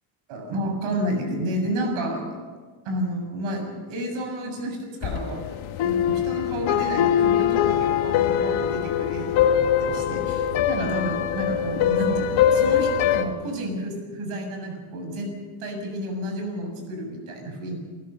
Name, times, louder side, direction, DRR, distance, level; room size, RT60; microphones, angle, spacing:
voice 1, 0.3-2.2 2.8-5.4 5.8-15.3 15.6-17.8, equal, 80° right, 4 dB, 6.8 m, -30 dB
sound 1, 5.0-13.2, left 9 dB, 75° left, 1.6 m, -22 dB
28.0 x 16.0 x 6.8 m, 1.5 s
cardioid pair, 150°, 49 cm